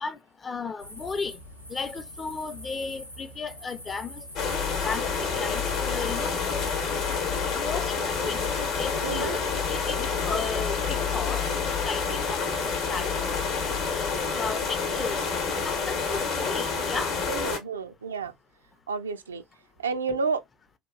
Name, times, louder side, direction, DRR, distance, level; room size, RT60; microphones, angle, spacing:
voice 1, 0.0-1.4 1.7-4.2 4.8-6.6 7.5-8.4 8.8-9.4 9.7-13.4 13.9-15.2 15.6-17.1, left 4 dB, 25° left, 0.4 m, -35 dB
sound 1, 0.8-7.2, equal, 90° left, 0.4 m, -44 dB
sound 2, 4.4-17.6, left 5 dB, 55° left, 0.8 m, -28 dB
voice 2, 9.0-9.4 17.3-18.3 18.9-19.4 19.8-20.4, right 5 dB, 80° right, 0.3 m, -30 dB
2.8 x 2.3 x 2.3 m
figure-of-eight pair, 65°, 0 cm